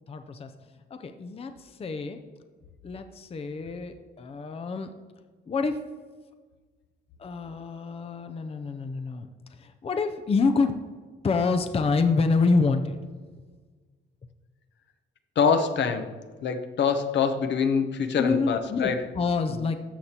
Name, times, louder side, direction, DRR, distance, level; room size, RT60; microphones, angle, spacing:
voice 1, 0.1-0.5 0.9-2.2 2.8-5.0 5.5-5.8 7.2-10.8 11.2-13.0 18.2-19.8, left 4 dB, 30° left, 8 dB, 0.5 m, -27 dB
voice 2, 15.4-16.1 16.4-19.0 19.5-19.6, left 6 dB, 65° left, 8 dB, 0.8 m, -25 dB
13.0 x 6.6 x 2.9 m, 1.4 s
cardioid pair, 90°, 20 cm